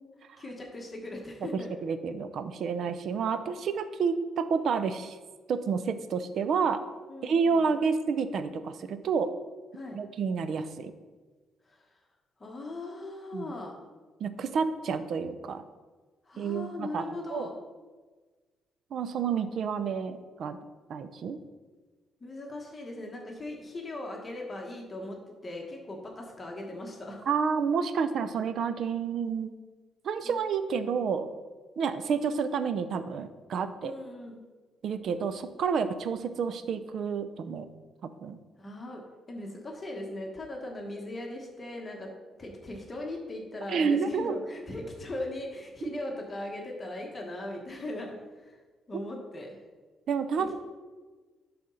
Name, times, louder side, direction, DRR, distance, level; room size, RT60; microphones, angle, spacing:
voice 1, 0.4-1.7 7.1-7.6 9.7-10.0 11.6-11.9 12.4-13.8 16.2-17.5 22.2-27.2 30.2-30.3 33.8-34.4 38.6-39.0 39.3-42.1 42.4-48.6 48.9-49.6, left 1 dB, 30° left, 0 dB, 1.5 m, -39 dB
voice 2, 1.8-5.2 5.5-6.8 7.2-9.3 9.9-10.9 13.3-13.5 14.2-15.6 16.4-17.5 18.9-20.6 20.9-21.4 27.3-29.5 30.0-31.3 31.8-33.9 34.8-37.7 38.2-38.4 43.7-44.4 50.1-50.6, right 6 dB, 65° right, 11 dB, 0.6 m, -29 dB
11.5 x 4.3 x 4.1 m, 1.3 s
cardioid pair, 90°, 0 cm